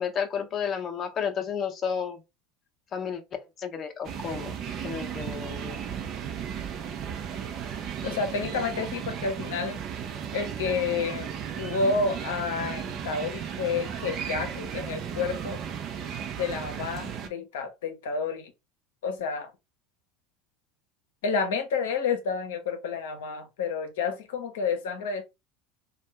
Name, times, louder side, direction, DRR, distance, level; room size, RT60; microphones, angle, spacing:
voice 1, 0.0-2.2 2.9-5.8, left 7 dB, 40° left, 0.8 m, -32 dB
sound 1, 4.0-17.3, right 8 dB, 45° right, 0.6 m, -35 dB
voice 2, 8.0-9.8 10.3-11.3 11.6-15.6 16.4-18.5 19.0-19.5 21.2-25.2, left 5 dB, 70° left, 0.8 m, -30 dB
2.6 x 2.3 x 3.4 m
hypercardioid pair, 75°, 0 cm